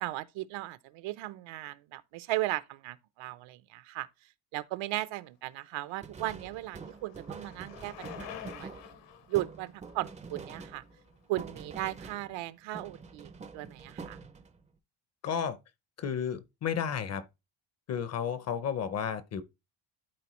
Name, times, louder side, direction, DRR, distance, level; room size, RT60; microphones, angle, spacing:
voice 1, 0.0-4.1 4.5-8.8 9.3-10.8 11.3-14.2, right 17 dB, 85° right, 0.8 m, -36 dB
Bicycle, 5.7-11.7, left 11 dB, 70° left, 1.1 m, -50 dB
sound 1, 6.0-12.5 12.7-14.6, right 5 dB, 15° right, 0.4 m, -46 dB
voice 2, 15.2-15.6 16.0-17.2 17.9-19.4, left 7 dB, 35° left, 0.6 m, -32 dB
12.0 x 4.3 x 3.0 m
cardioid pair, 175°, 45 cm